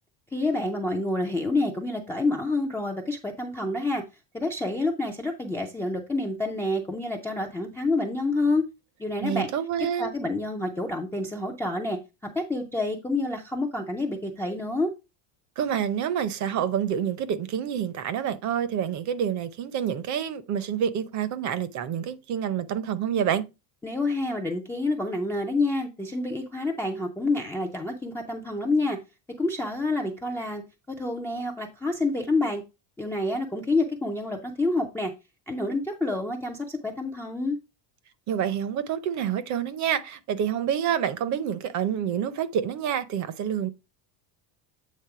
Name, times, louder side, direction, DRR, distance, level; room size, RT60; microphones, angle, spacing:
voice 1, 0.3-4.0 4.3-8.6 9.0-9.5 10.0-14.9 23.8-29.0 29.4-32.6 33.0-35.1 35.5-37.6, left 2 dB, 5° left, 0.3 m, -28 dB
voice 2, 9.2-10.1 15.6-23.4 38.3-43.7, right 9 dB, 40° right, 0.6 m, -28 dB
8.4 x 3.5 x 4.7 m
cardioid pair, 170°, 48 cm